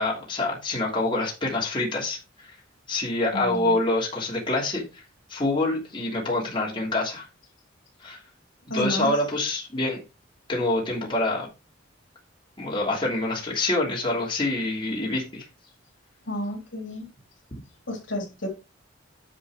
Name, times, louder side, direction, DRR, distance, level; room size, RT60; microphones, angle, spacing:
voice 1, 0.0-2.5 2.9-5.0 5.3-7.3 8.0-8.2 8.7-10.0 10.5-11.5 12.6-15.4, left 2 dB, 25° left, 2.8 m, -26 dB
voice 2, 3.3-3.8 8.7-9.1 16.3-17.1 17.9-18.5, equal, 70° left, 3.2 m, -31 dB
10.0 x 4.6 x 4.9 m
head